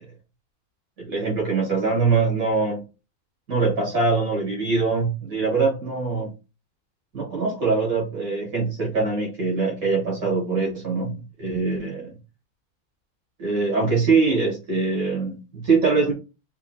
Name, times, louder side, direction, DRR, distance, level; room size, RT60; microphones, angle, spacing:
voice 1, 1.0-2.8 3.5-6.3 7.1-12.1 13.4-16.1, right 4 dB, 85° right, 2.1 m, -23 dB
6.6 x 3.1 x 2.3 m
omnidirectional pair, 1.4 m